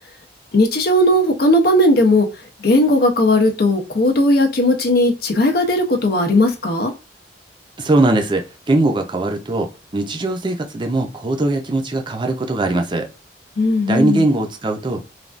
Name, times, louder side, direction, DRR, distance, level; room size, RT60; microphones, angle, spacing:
voice 1, 0.5-2.3 2.6-6.9 13.6-14.2, left 1 dB, 55° left, 0.5 m, -16 dB
voice 2, 7.8-13.1 13.9-15.0, right 2 dB, 25° right, 0.5 m, -20 dB
3.2 x 2.3 x 2.5 m
head